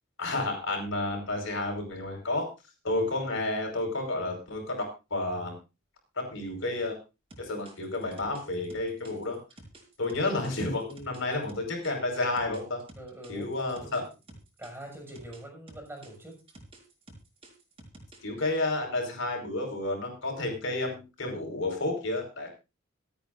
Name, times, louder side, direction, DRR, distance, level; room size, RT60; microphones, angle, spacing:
voice 1, 0.2-2.5 2.8-5.6 6.1-7.0 7.4-9.4 10.0-12.8 13.3-14.0 18.2-22.5, left 2 dB, 70° left, 3 dB, 5.1 m, -31 dB
sound 1, 7.3-11.9 12.4-15.4 15.7-18.4, right 1 dB, 30° right, 4.7 m, -51 dB
voice 2, 13.0-14.1 14.6-16.4, right 1 dB, 10° right, 1 dB, 6.5 m, -44 dB
26.5 x 8.9 x 2.6 m, 0.29 s
head